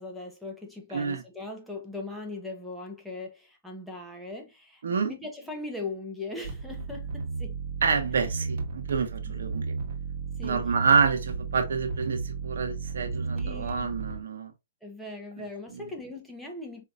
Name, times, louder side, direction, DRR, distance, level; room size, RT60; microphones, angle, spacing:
voice 1, 0.0-7.6 10.4-10.6 13.3-13.9 14.8-16.8, left 2 dB, ahead, 1.0 m, -39 dB
voice 2, 0.9-1.2 4.8-5.1 7.8-9.7 10.4-14.5 15.7-15.8, right 5 dB, 75° right, 1.2 m, -27 dB
sound 1, 6.4-14.2, right 4 dB, 55° right, 1.2 m, -34 dB
5.1 x 2.9 x 2.5 m
hypercardioid pair, 145°, 0 cm